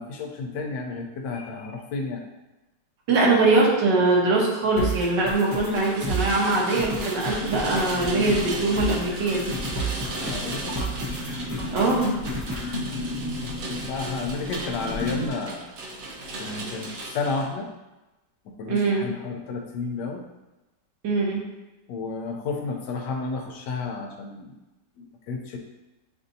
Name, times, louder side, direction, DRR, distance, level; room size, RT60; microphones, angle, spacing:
voice 1, 0.0-2.2 10.1-10.8 12.8-13.0 13.8-15.6 16.4-17.7 18.6-20.2 21.9-24.6 25.0-25.6, left 4 dB, 80° left, 2 dB, 1.3 m, -31 dB
voice 2, 3.1-9.5 11.7-12.1 18.7-19.1 21.0-21.4, right 3 dB, 80° right, -3 dB, 1.7 m, -22 dB
sound 1, 4.8-12.7, right 2 dB, 25° right, 0.4 m, -32 dB
Rain, 5.1-17.5, right 2 dB, 60° right, 1.0 m, -36 dB
sound 2, 7.4-15.3, left 2 dB, 65° left, 0.7 m, -35 dB
7.4 x 2.7 x 2.7 m, 1.0 s
omnidirectional pair, 1.9 m